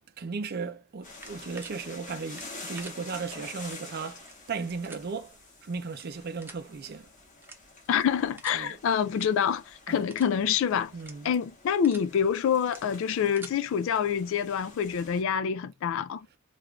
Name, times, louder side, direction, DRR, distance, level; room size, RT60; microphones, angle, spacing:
voice 1, 0.0-7.1 8.5-8.8 9.9-10.0 10.9-11.3, right 4 dB, 50° right, 0.5 m, -36 dB
sound 1, 1.0-15.2, left 3 dB, 40° left, 1.5 m, -48 dB
sound 2, 1.1-1.7 2.3-2.9 3.6-3.8 4.2-4.3 4.8-5.0 5.9-6.1 6.4-6.6 7.4-7.8 8.4-8.6 9.1-9.3 9.6-9.8 10.1-10.3 10.9-11.1 11.6-12.1 12.6-12.8 13.2-13.5, right 3 dB, 10° right, 0.8 m, -46 dB
voice 2, 7.9-10.9 11.2-16.3, left 8 dB, 65° left, 0.3 m, -26 dB
3.6 x 2.4 x 3.1 m
head